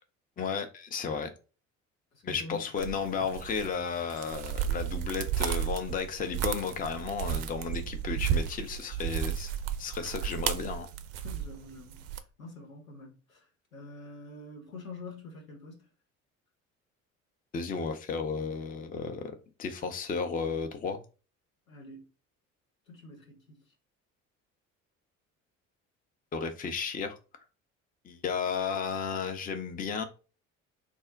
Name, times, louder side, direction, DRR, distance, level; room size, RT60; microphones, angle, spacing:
voice 1, 0.4-1.3 2.2-9.5 9.8-10.9 17.5-21.0 26.3-27.2 28.0-30.0, left 5 dB, 20° left, 0.5 m, -33 dB
voice 2, 2.1-2.8 9.9-10.1 11.2-15.9 21.7-22.1 22.9-23.7, left 2 dB, 85° left, 0.8 m, -47 dB
sound 1, 2.8-12.2, right 9 dB, 40° right, 0.4 m, -33 dB
2.5 x 2.1 x 3.8 m
figure-of-eight pair, 55°, 40 cm